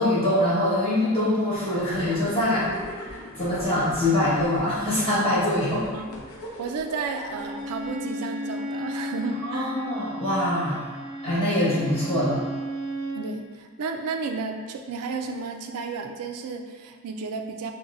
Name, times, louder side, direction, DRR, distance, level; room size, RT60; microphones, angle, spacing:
voice 1, 0.0-2.7 3.3-5.9 9.5-10.8 11.2-12.4, left 1 dB, 25° left, -12 dB, 1.3 m, -23 dB
sound 1, 1.6-7.9, left 1 dB, 65° left, 0.6 m, -40 dB
voice 2, 6.6-9.7 13.2-17.7, right 4 dB, 75° right, 5 dB, 0.3 m, -32 dB
Bowed string instrument, 7.2-13.3, equal, 25° right, 0.5 m, -34 dB
5.3 x 2.1 x 2.5 m, 1.5 s
head